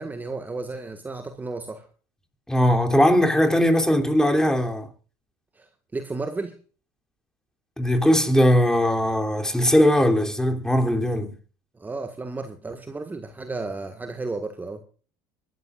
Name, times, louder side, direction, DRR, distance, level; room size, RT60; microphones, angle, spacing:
voice 1, 0.0-1.8 5.6-6.5 11.8-14.8, right 3 dB, 20° right, 1.6 m, -33 dB
voice 2, 2.5-4.9 7.8-11.3, equal, 5° left, 3.0 m, -20 dB
24.5 x 12.5 x 2.5 m
hypercardioid pair, 85°, 10 cm